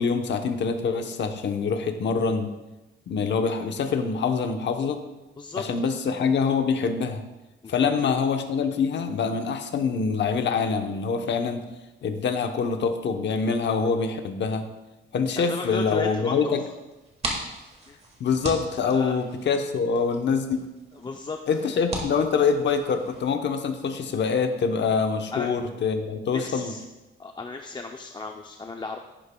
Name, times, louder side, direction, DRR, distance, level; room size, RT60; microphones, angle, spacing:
voice 1, 0.0-2.5 3.1-5.0 5.6-7.2 7.7-11.6 12.0-14.7 15.1-16.6 18.2-20.6 21.5-26.7, left 5 dB, 60° left, 6 dB, 0.9 m, -25 dB
voice 2, 5.4-5.9 7.6-8.1 15.4-16.7 17.9-18.0 18.8-19.1 21.0-21.4 21.6-21.8 25.3-25.5 26.3-26.8 27.2-29.0, left 3 dB, 20° left, 4 dB, 0.4 m, -35 dB
sound 1, 16.9-23.2, right 1 dB, 30° right, 1.8 m, -38 dB
11.0 x 10.0 x 2.2 m, 1.0 s
cardioid pair, 135°, 21 cm